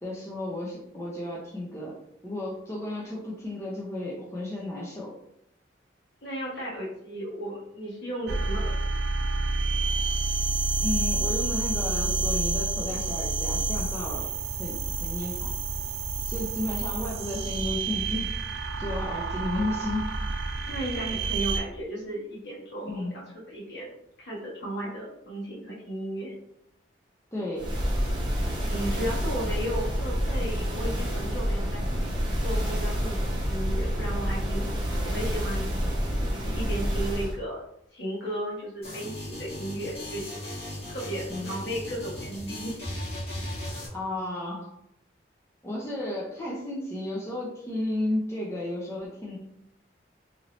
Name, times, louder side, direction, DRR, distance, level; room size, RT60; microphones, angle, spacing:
voice 1, 0.0-2.0 2.2-5.1 10.8-14.3 14.6-15.5 16.2-18.3 18.8-20.1 22.8-23.2 27.3-27.7 41.3-41.5 43.9-44.7 45.6-49.4, left 1 dB, 15° left, -4 dB, 0.5 m, -33 dB
voice 2, 6.2-9.0 20.7-26.3 28.6-31.8 32.4-35.6 36.3-37.6 37.9-40.2 40.8-42.8, right 1 dB, 60° left, -4 dB, 1.2 m, -35 dB
sound 1, 8.3-21.6, right 3 dB, 60° right, 0.3 m, -29 dB
sound 2, 27.6-37.4, equal, 25° right, 0.8 m, -28 dB
sound 3, 38.8-43.9, left 1 dB, 30° left, 1.1 m, -37 dB
2.7 x 2.7 x 3.0 m, 0.77 s
head